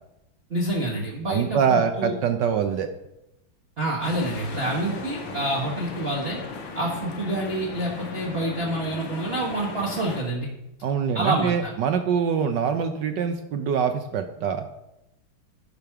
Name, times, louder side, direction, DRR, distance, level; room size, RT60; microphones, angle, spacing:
voice 1, 0.5-2.1 3.8-6.4 6.7-10.5 11.1-11.7, right 1 dB, 35° right, -4 dB, 1.3 m, -27 dB
voice 2, 1.3-2.9 10.8-14.7, right 7 dB, 70° right, 7 dB, 1.1 m, -24 dB
sound 1, 4.0-10.2, left 4 dB, 65° left, 1.8 m, -36 dB
10.5 x 5.2 x 5.8 m, 0.90 s
omnidirectional pair, 2.3 m